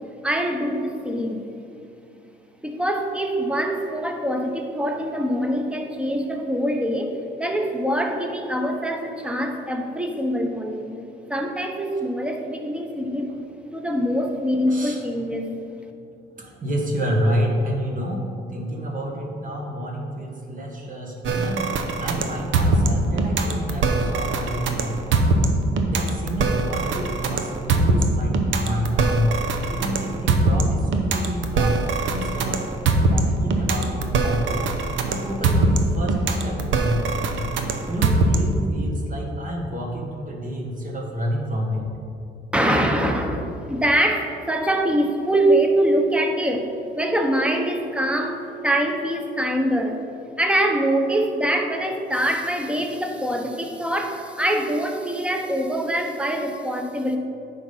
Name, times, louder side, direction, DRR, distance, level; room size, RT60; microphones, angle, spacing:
voice 1, 0.2-1.5 2.6-11.0 11.3-13.3 13.7-15.5 42.5-46.7 46.9-50.0 50.4-57.2, right 1 dB, 5° right, 3 dB, 0.9 m, -24 dB
voice 2, 14.7-15.0 16.4-21.7 22.0-25.3 25.9-29.3 29.7-32.6 33.1-34.7 35.1-37.4 37.9-41.9, equal, 40° right, -1 dB, 1.6 m, -29 dB
sound 1, 21.2-38.7, right 3 dB, 75° right, 0.8 m, -22 dB
9.2 x 4.0 x 5.6 m, 2.6 s
cardioid pair, 90°, 20 cm